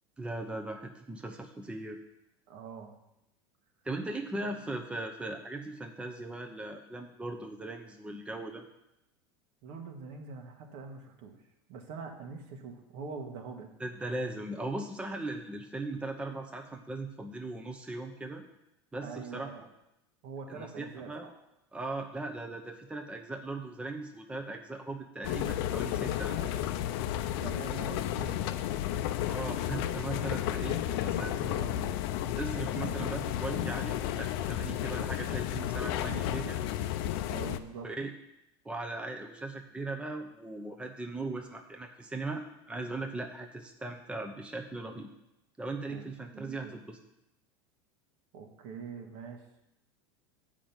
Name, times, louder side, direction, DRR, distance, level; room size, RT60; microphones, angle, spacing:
voice 1, 0.2-2.0 3.8-8.6 13.8-18.4 18.9-19.5 20.5-21.3 21.7-26.4 29.3-30.8 31.0-31.3 32.4-36.6 37.8-38.1 38.6-45.1 45.6-47.0, right 2 dB, 10° right, 3 dB, 0.7 m, -38 dB
voice 2, 2.5-2.9 4.5-4.6 9.6-11.4 11.7-13.7 19.0-19.6 20.2-21.3 26.2-26.6 27.4-28.9 30.1-31.9 37.3-37.9 45.9-46.1 46.3-46.8 48.3-49.4, right 5 dB, 60° right, 3 dB, 1.5 m, -44 dB
sound 1, 25.2-37.6, left 12 dB, 65° left, 0.6 m, -32 dB
7.6 x 5.1 x 7.2 m, 0.88 s
supercardioid pair, 115°, 14 cm